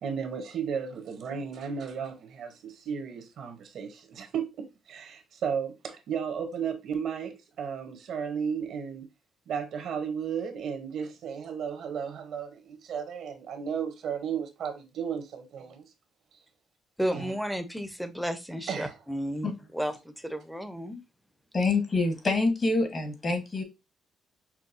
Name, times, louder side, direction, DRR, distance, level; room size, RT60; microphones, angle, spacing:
voice 1, 0.0-9.1 9.5-15.8 17.1-17.3 18.7-18.9, right 7 dB, 70° right, 0.9 m, -34 dB
voice 2, 17.0-21.0, equal, ahead, 0.7 m, -33 dB
voice 3, 21.5-23.6, left 3 dB, 40° left, 1.4 m, -26 dB
5.8 x 2.3 x 2.6 m
cardioid pair, 90°, 0 cm